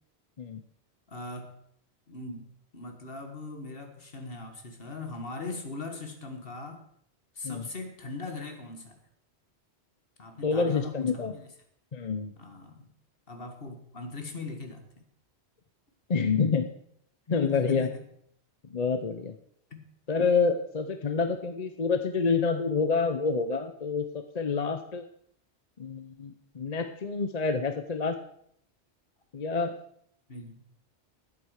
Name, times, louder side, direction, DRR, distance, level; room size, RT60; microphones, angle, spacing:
voice 1, 1.1-1.5 2.1-6.9 7.3-9.0 10.2-11.5 12.4-12.9 13.3-15.1 17.5-18.0 19.7-19.8 30.3-30.6, left 3 dB, 55° left, 5 dB, 1.9 m, -40 dB
voice 2, 10.4-11.3 11.9-12.3 16.1-16.7 17.3-17.9 18.7-19.3 20.1-25.0 25.8-28.2 29.3-29.8, left 5 dB, 40° left, 8 dB, 0.8 m, -27 dB
11.5 x 8.5 x 6.5 m, 0.68 s
omnidirectional pair, 1.2 m